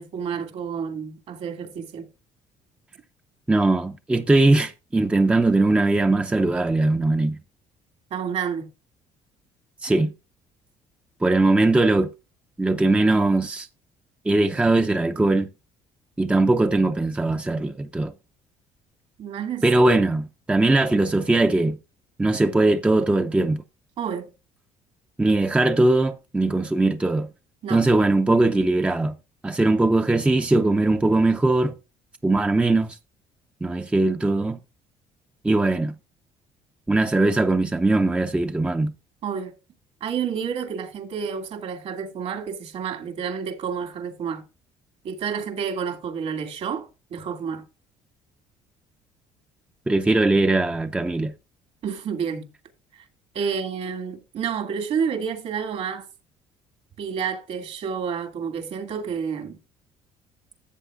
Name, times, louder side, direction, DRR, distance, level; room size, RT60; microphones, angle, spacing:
voice 1, 0.0-2.1 8.1-8.7 19.2-19.6 24.0-24.3 27.6-27.8 39.2-39.5 40.0-44.4 45.0-47.6 51.8-52.5 53.3-56.0 57.0-59.6, right 7 dB, 60° right, 2.2 m, -29 dB
voice 2, 3.5-7.4 9.8-10.1 11.2-12.1 12.6-13.7 14.3-15.5 16.2-18.1 19.6-21.8 22.2-23.6 25.2-27.3 27.7-29.1 29.4-31.7 32.2-33.0 33.6-34.6 35.4-35.9 36.9-38.9 49.9-51.3, right 2 dB, 10° right, 0.5 m, -20 dB
13.5 x 7.7 x 2.5 m
cardioid pair, 105°, 12 cm